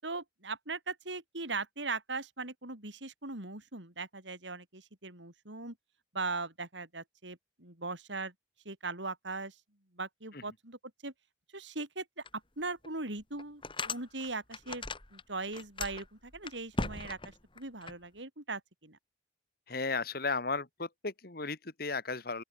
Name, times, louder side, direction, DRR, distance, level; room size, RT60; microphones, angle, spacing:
voice 1, 0.0-5.8 6.1-8.3 8.7-9.6 9.9-11.1 11.5-12.3 12.6-14.9 15.1-19.0, right 3 dB, 80° right, 5.3 m, -39 dB
sound 1, 12.2-12.3 12.8-12.9 13.4-15.2 15.5-17.9, left 3 dB, 30° left, 4.4 m, -38 dB
voice 2, 19.7-22.4, left 4 dB, 55° left, 2.2 m, -35 dB
open air
head